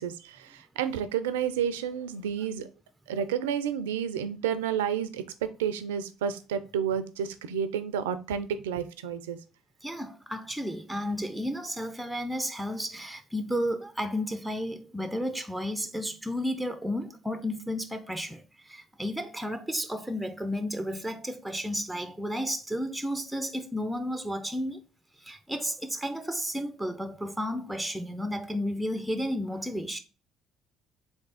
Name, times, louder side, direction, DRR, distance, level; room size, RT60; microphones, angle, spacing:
voice 1, 0.0-2.7 3.1-5.2 5.6-9.4, right 8 dB, 90° right, 0.4 m, -30 dB
voice 2, 9.8-24.8 25.2-30.0, equal, 5° right, 0.6 m, -32 dB
3.7 x 3.5 x 4.0 m
hypercardioid pair, 60°, 0 cm